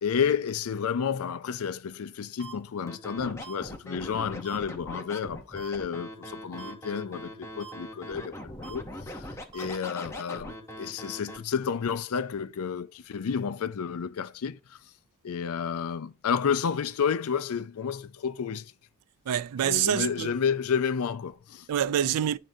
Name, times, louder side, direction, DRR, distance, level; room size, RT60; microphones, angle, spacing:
voice 1, 0.0-14.8 15.2-18.7 19.6-21.7, left 6 dB, 70° left, 0.4 m, -31 dB
sound 1, 2.4-2.5 3.4-3.5 4.4-4.6 5.6-5.7 6.6-6.7 7.6-7.7 8.6-8.7 9.5-9.7, right 7 dB, 20° right, 3.5 m, -43 dB
Scratching (performance technique), 2.9-11.4, left 1 dB, 10° left, 0.8 m, -41 dB
voice 2, 19.3-20.4 21.7-22.4, right 10 dB, 90° right, 0.4 m, -26 dB
10.0 x 3.6 x 2.7 m
head